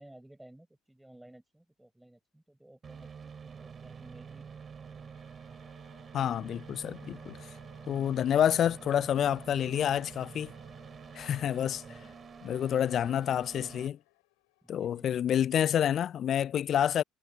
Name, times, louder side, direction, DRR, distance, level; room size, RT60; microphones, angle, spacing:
voice 1, 0.0-4.5 4.9-6.0 11.8-12.8 14.6-15.2, right 1 dB, 5° right, 5.6 m, -57 dB
sound 1, 2.8-13.9, right 6 dB, 35° right, 4.9 m, -48 dB
Siren, 3.8-15.7, left 28 dB, 70° left, 5.1 m, -63 dB
voice 2, 6.1-7.4 7.9-10.5 11.1-11.8 12.4-14.0 14.7-17.0, left 10 dB, 45° left, 0.4 m, -28 dB
figure-of-eight pair, 60°, 0 cm